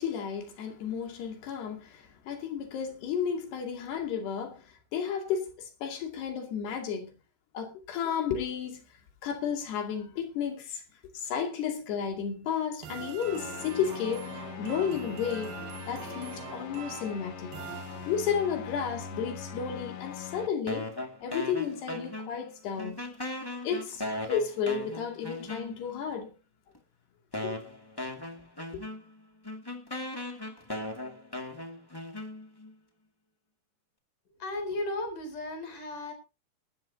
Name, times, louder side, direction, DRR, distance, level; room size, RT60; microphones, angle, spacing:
voice 1, 0.0-7.1 7.5-8.8 9.2-10.8 11.1-15.5 15.9-17.6 18.1-20.9 21.2-23.1 23.6-26.3 27.4-27.6 28.7-28.8, left 7 dB, 85° left, 4.5 m, -33 dB
sound 1, 12.8-18.5, right 9 dB, 70° right, 3.1 m, -44 dB
sound 2, 13.2-20.5, left 7 dB, 70° left, 1.5 m, -42 dB
sound 3, 20.7-22.5 22.8-26.0 26.7-26.8 27.3-32.7, left 1 dB, 30° left, 0.4 m, -38 dB
voice 2, 34.4-36.1, left 2 dB, 55° left, 5.5 m, -35 dB
20.5 x 12.0 x 2.8 m
omnidirectional pair, 4.6 m